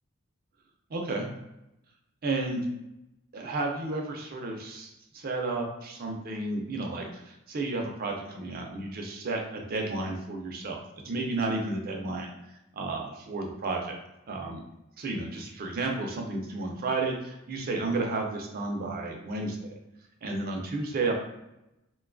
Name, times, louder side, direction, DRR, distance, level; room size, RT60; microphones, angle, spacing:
voice 1, 0.9-1.3 2.2-2.6 3.3-10.8 11.0-12.3 12.7-13.9 14.3-14.6 15.0-19.7 20.2-21.1, right 3 dB, 45° right, 1 dB, 0.5 m, -32 dB
2.5 x 2.2 x 2.4 m, 0.90 s
head